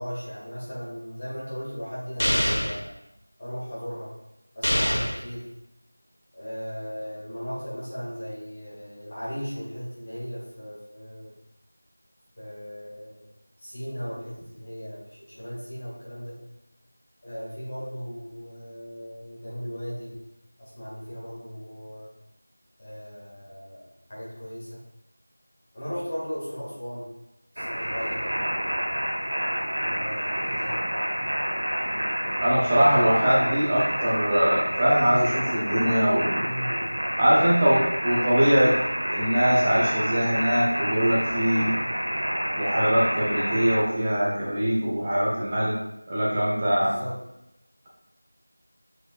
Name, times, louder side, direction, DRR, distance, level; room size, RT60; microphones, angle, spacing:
voice 1, 0.0-2.9 3.4-4.1 4.5-5.4 6.3-11.3 12.4-13.3 13.6-16.4 17.2-20.1 20.6-22.1 22.8-24.8 25.7-27.1 27.5-28.5 29.8-30.9 32.7-33.6 36.4-36.9 46.7-47.2, equal, 20° left, -9 dB, 2.0 m, -37 dB
sound 1, 2.2-2.8 4.6-5.2, equal, 85° left, 1.4 m, -24 dB
sound 2, 27.6-43.8, equal, 55° right, 1.6 m, -28 dB
voice 2, 32.4-36.4 37.2-38.8 39.1-41.7 42.6-45.8 46.1-47.0, equal, 10° right, -6 dB, 0.5 m, -22 dB
6.9 x 6.1 x 2.5 m, 0.88 s
figure-of-eight pair, 180°, 0 cm